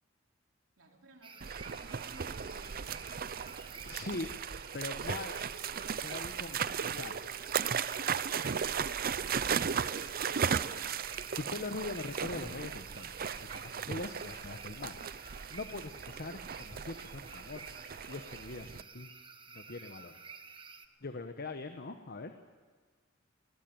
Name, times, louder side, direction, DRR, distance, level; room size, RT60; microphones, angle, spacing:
voice 1, 0.8-3.1, right 1 dB, 70° right, 1 dB, 3.7 m, -59 dB
sound 1, 1.2-20.9, right 5 dB, 25° right, 1.3 m, -51 dB
sound 2, 1.4-18.8, right 7 dB, 50° right, 0.6 m, -36 dB
voice 2, 3.9-4.3 4.7-5.4 6.0-7.2 11.4-13.1 13.4-15.1 15.5-19.1 19.5-20.1 21.0-22.3, left 3 dB, 55° left, 7 dB, 1.1 m, -42 dB
20.0 x 20.0 x 9.0 m, 1.5 s
head